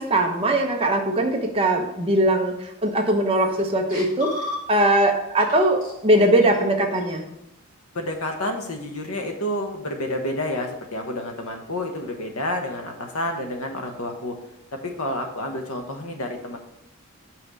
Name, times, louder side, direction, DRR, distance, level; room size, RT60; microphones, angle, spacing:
voice 1, 0.0-4.3 4.7-7.3, right 1 dB, 25° right, 3 dB, 0.9 m, -20 dB
sound 1, 3.1-3.6 3.9-5.0 5.4-5.5 5.8-7.2, left 2 dB, 40° left, 2.4 m, -36 dB
voice 2, 7.9-14.3 14.7-16.6, left 1 dB, 75° left, 4 dB, 1.2 m, -29 dB
5.8 x 4.5 x 5.5 m, 0.82 s
head